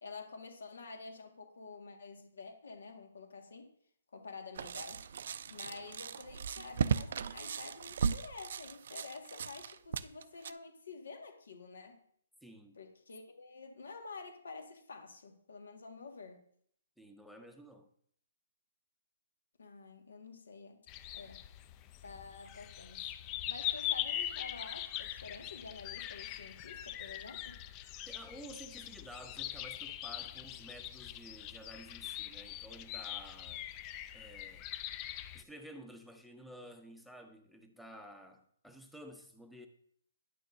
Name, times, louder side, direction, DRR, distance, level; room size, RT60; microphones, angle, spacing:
voice 1, 0.0-3.7 4.1-5.0 5.5-12.0 12.8-16.4 19.6-20.8 21.1-21.4 22.0-23.1 23.5-27.6, left 4 dB, 80° left, 1.6 m, -49 dB
sound 1, 4.6-10.5, right 6 dB, 60° right, 0.3 m, -37 dB
voice 2, 12.4-12.8 17.0-17.9 28.1-33.7 34.1-34.7 35.3-39.7, equal, ahead, 0.7 m, -52 dB
sound 2, 20.9-35.4, left 13 dB, 25° left, 0.3 m, -42 dB
9.9 x 6.3 x 2.6 m
hypercardioid pair, 150°, 0 cm